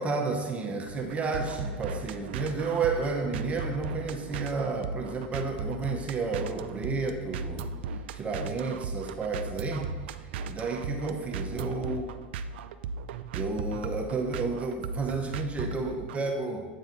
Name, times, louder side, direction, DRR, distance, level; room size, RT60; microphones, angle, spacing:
voice 1, 0.0-7.7 8.1-9.9 10.4-12.1 13.3-16.6, right 4 dB, 20° right, 1 dB, 0.9 m, -31 dB
sound 1, 0.9-16.2, right 4 dB, 70° right, 0.4 m, -36 dB
8.3 x 4.0 x 3.9 m, 1.3 s
hypercardioid pair, 115°, 6 cm